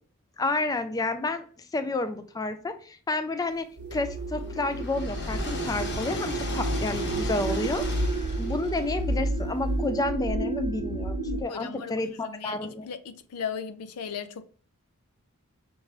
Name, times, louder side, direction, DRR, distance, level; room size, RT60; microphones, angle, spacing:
voice 1, 0.4-1.4 1.7-3.7 3.9-7.8 8.4-12.9, left 2 dB, 15° left, 0.3 m, -30 dB
sound 1, 3.8-11.4, right 2 dB, 85° right, 1.0 m, -30 dB
sound 2, 3.9-9.8, left 2 dB, 50° left, 1.0 m, -37 dB
voice 2, 11.5-14.4, left 7 dB, 75° left, 0.5 m, -37 dB
6.2 x 2.6 x 3.0 m
head